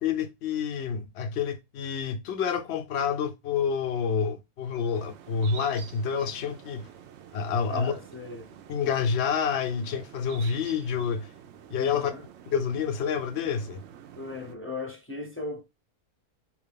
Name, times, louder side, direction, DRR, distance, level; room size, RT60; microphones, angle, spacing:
voice 1, 0.0-6.9 7.3-7.9 8.7-11.3 11.7-12.1 12.5-13.8, left 6 dB, 60° left, 0.7 m, -28 dB
sound 1, 4.9-14.5, right 9 dB, 70° right, 0.6 m, -48 dB
voice 2, 7.7-8.5 11.8-12.2 14.2-15.6, left 2 dB, 15° left, 0.4 m, -37 dB
4.8 x 2.4 x 3.5 m
omnidirectional pair, 1.6 m